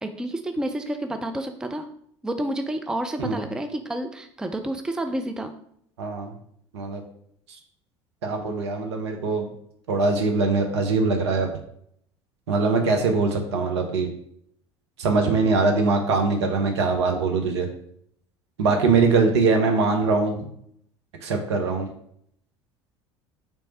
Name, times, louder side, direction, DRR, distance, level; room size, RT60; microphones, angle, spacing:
voice 1, 0.0-1.9 2.2-5.5, right 1 dB, 5° right, 6 dB, 0.4 m, -29 dB
voice 2, 6.0-6.3 6.7-7.0 8.2-9.5 9.9-11.5 12.5-14.1 15.0-17.7 18.6-20.5 21.2-21.9, right 4 dB, 70° right, 4 dB, 0.8 m, -22 dB
3.4 x 3.2 x 4.1 m, 0.68 s
figure-of-eight pair, 65°, 15 cm